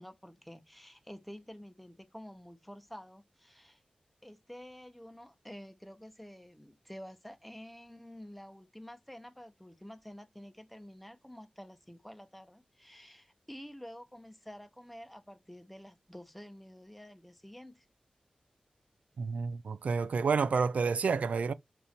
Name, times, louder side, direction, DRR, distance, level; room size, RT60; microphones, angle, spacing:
voice 1, 0.0-3.8 4.2-17.9, equal, ahead, 0.9 m, -49 dB
voice 2, 19.2-21.5, right 5 dB, 80° right, 0.6 m, -29 dB
5.3 x 4.4 x 4.4 m
wide cardioid pair, 105°, 2 cm